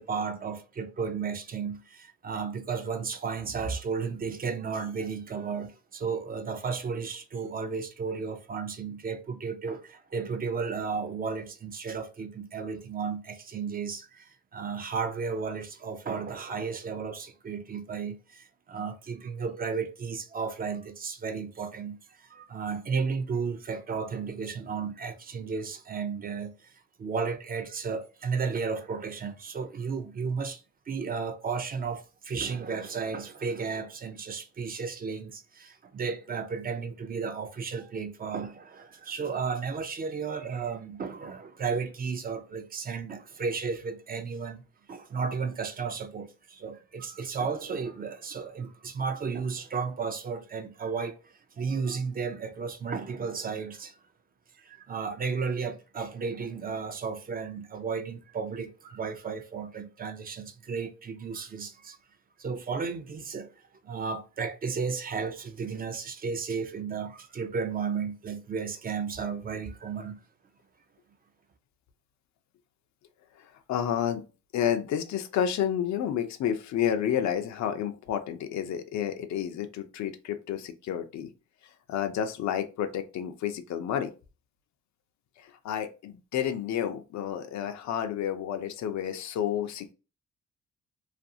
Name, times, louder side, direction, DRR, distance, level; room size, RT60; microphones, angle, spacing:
voice 1, 0.0-26.5 27.0-44.6 44.9-51.2 51.6-53.9 54.6-62.0 62.4-63.5 63.8-70.2, right 5 dB, 30° right, 0.4 m, -33 dB
voice 2, 73.4-74.2 74.5-81.3 81.9-84.1 85.4-89.9, left 9 dB, 65° left, 0.5 m, -30 dB
2.5 x 2.4 x 2.6 m
cardioid pair, 90°, 30 cm